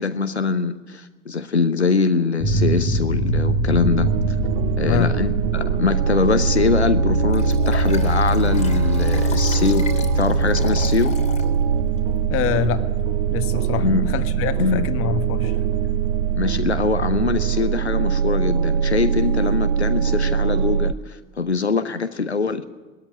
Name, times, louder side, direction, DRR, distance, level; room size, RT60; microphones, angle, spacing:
voice 1, 0.0-4.1 4.8-11.2 13.8-14.1 14.6-14.9 16.3-22.7, left 4 dB, 85° left, 11 dB, 0.8 m, -23 dB
sound 1, 2.4-17.4, left 2 dB, 70° left, 2.1 m, -26 dB
sound 2, 3.8-20.9, right 8 dB, 60° right, 0.5 m, -22 dB
voice 2, 4.8-5.1 12.3-12.8 13.3-15.6, left 9 dB, 45° left, 11 dB, 1.5 m, -25 dB
Liquid, 7.3-11.5 12.0-12.1, left 5 dB, 20° left, 2.9 m, -37 dB
20.0 x 13.5 x 9.6 m, 1.3 s
figure-of-eight pair, 70°, 32 cm